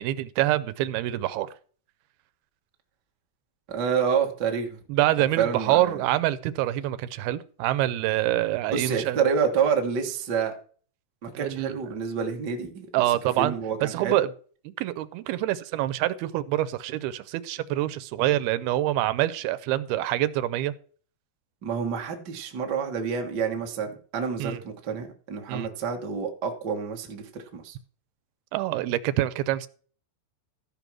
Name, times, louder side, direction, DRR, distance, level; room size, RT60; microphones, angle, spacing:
voice 1, 0.0-1.5 4.9-9.2 11.4-11.8 12.9-13.5 13.8-14.3 14.7-20.7 24.4-24.6 25.5-25.7 28.5-29.7, right 14 dB, 85° right, 2.5 m, -26 dB
voice 2, 3.7-4.8 5.4-6.0 8.7-10.5 11.2-12.9 13.4-14.2 21.6-27.8, right 6 dB, 65° right, 1.0 m, -28 dB
13.5 x 5.3 x 6.0 m
omnidirectional pair, 4.5 m